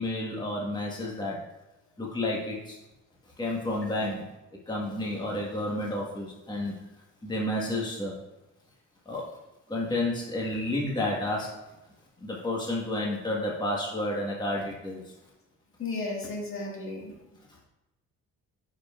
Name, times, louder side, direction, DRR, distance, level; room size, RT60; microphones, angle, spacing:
voice 1, 0.0-1.4 2.0-2.8 3.4-4.2 4.7-6.7 7.2-8.1 9.0-9.2 9.7-11.5 12.2-15.0, left 1 dB, 15° left, -3 dB, 1.4 m, -30 dB
voice 2, 15.8-17.1, left 3 dB, 45° left, -1 dB, 1.7 m, -34 dB
8.7 x 5.5 x 2.4 m, 0.98 s
cardioid pair, 90°, 30 cm